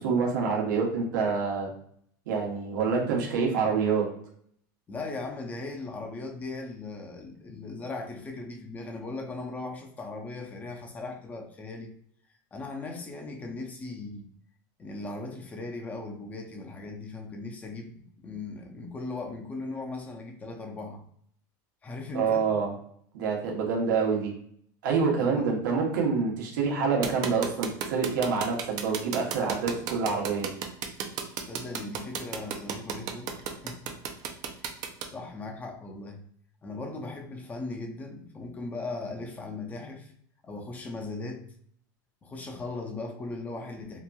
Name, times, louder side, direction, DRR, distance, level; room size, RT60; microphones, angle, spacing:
voice 1, 0.0-1.7 2.3-4.0 22.1-22.7 23.1-24.3 24.8-30.5, right 5 dB, 85° right, -1 dB, 0.9 m, -27 dB
voice 2, 4.9-11.9 12.5-14.3 14.8-21.0 21.8-22.5 25.2-25.5 31.5-33.9 35.1-36.2 36.6-40.1 40.4-41.5 42.2-44.0, left 3 dB, 15° left, 3 dB, 0.5 m, -38 dB
sound 1, 27.0-35.0, right 7 dB, 40° right, 0.4 m, -33 dB
2.9 x 2.4 x 2.2 m, 0.63 s
supercardioid pair, 145°, 10 cm